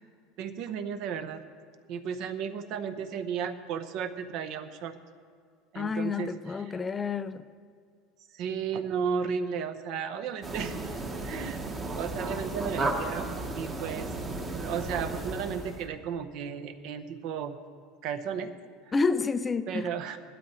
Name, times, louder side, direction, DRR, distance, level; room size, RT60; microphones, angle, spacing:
voice 1, 0.4-1.4 1.9-4.9 5.7-6.7 8.3-10.9 11.2-11.6 11.9-14.1 14.5-17.6 18.0-18.5 19.7-20.2, right 7 dB, 50° right, 0.8 m, -34 dB
voice 2, 5.8-7.4 18.9-19.9, left 4 dB, 15° left, 0.4 m, -29 dB
sound 1, 10.4-15.9, right 2 dB, 20° right, 1.1 m, -34 dB
17.0 x 12.5 x 4.3 m
cardioid pair, 165°, 0 cm